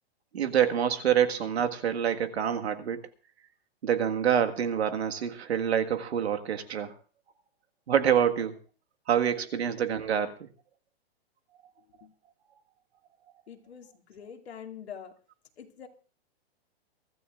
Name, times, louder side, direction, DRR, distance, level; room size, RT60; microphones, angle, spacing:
voice 1, 0.3-3.0 3.8-6.9 7.9-8.6 9.1-10.3, right 9 dB, 80° right, 1.7 m, -26 dB
voice 2, 13.5-15.2 15.6-15.9, left 8 dB, 80° left, 2.4 m, -45 dB
23.5 x 14.0 x 2.5 m
hypercardioid pair, 180°, 32 cm